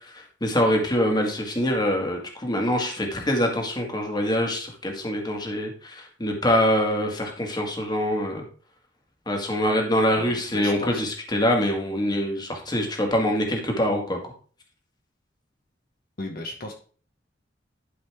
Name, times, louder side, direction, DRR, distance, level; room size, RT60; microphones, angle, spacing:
voice 1, 0.0-8.4 9.3-14.2, equal, 25° left, 2 dB, 1.7 m, -24 dB
voice 2, 10.2-11.0 16.2-16.7, left 2 dB, 55° left, 2 dB, 1.2 m, -35 dB
11.5 x 5.1 x 3.5 m, 0.42 s
head